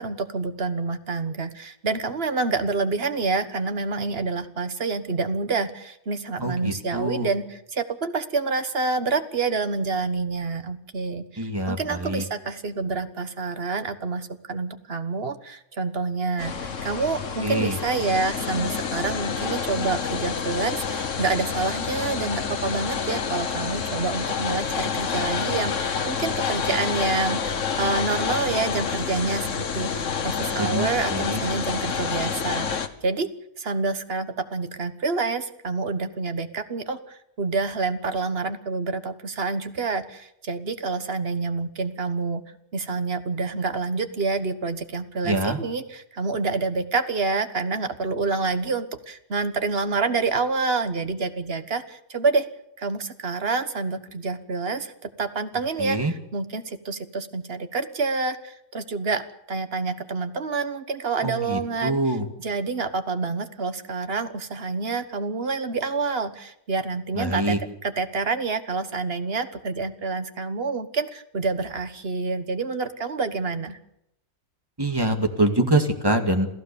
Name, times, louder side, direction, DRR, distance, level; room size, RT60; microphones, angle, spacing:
voice 1, 0.0-33.3 33.6-42.4 42.7-52.5 52.8-67.6 67.8-73.8, right 4 dB, 50° right, 10 dB, 1.5 m, -28 dB
voice 2, 6.4-7.3 11.4-12.2 17.4-17.7 30.6-31.4 45.3-45.6 55.8-56.1 61.2-62.2 67.2-67.6 74.8-76.5, right 1 dB, 15° right, 5 dB, 2.1 m, -25 dB
sound 1, 16.4-32.9, left 6 dB, 65° left, 1.6 m, -28 dB
27.5 x 15.5 x 7.0 m, 0.79 s
omnidirectional pair, 1.4 m